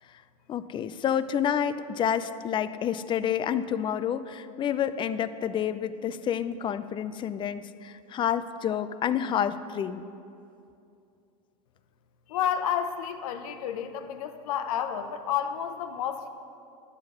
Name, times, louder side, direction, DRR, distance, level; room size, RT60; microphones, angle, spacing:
voice 1, 0.5-10.0, left 9 dB, 25° left, 13 dB, 0.4 m, -29 dB
voice 2, 12.3-16.3, left 9 dB, 80° left, 8 dB, 0.8 m, -30 dB
12.0 x 7.8 x 5.4 m, 2.6 s
supercardioid pair, 120°, 18 cm